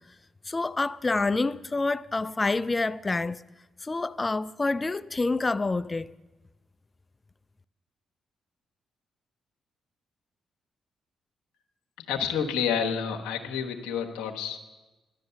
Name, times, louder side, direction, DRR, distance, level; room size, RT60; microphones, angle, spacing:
voice 1, 0.4-3.4 3.8-6.1, left 3 dB, 25° left, 0.5 m, -27 dB
voice 2, 12.0-14.6, left 7 dB, 90° left, 1.2 m, -29 dB
14.0 x 11.0 x 6.8 m
supercardioid pair, 60°, 0 cm